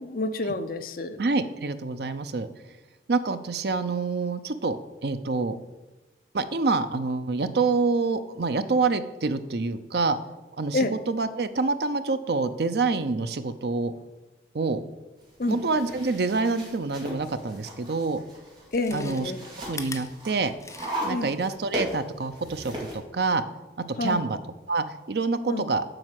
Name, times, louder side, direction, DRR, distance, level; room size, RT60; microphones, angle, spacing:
voice 1, 0.0-1.2 10.7-10.9 15.4-15.6 18.7-19.4 21.1-21.3 24.0-24.2 25.5-25.6, left 2 dB, 55° left, 9 dB, 0.7 m, -28 dB
voice 2, 1.2-2.5 3.1-4.8 5.0-5.6 6.3-10.2 10.6-13.9 14.5-14.8 15.5-18.2 18.9-19.3 19.7-20.5 21.0-23.4 24.0-24.4 24.7-25.8, right 3 dB, 65° right, 11 dB, 0.6 m, -26 dB
sound 1, 15.2-22.9, right 1 dB, 25° right, 2.5 m, -37 dB
Chewing mastication, 18.7-21.2 21.6-21.7, left 4 dB, 15° left, 0.7 m, -42 dB
7.8 x 5.3 x 7.5 m, 1.1 s
head